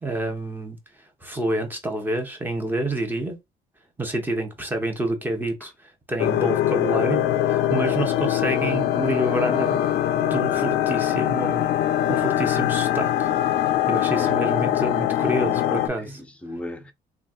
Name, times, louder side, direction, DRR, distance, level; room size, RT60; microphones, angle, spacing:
voice 1, 0.0-0.8 1.2-3.4 4.0-9.8 10.2-13.3 13.9-16.2, right 1 dB, 10° right, 0.9 m, -28 dB
sound 1, 6.2-15.9, left 12 dB, 75° left, 0.4 m, -22 dB
voice 2, 14.2-14.9 15.2-15.5 16.0-16.9, left 1 dB, 5° left, 0.5 m, -37 dB
3.2 x 2.4 x 2.5 m
cardioid pair, 110°, 17 cm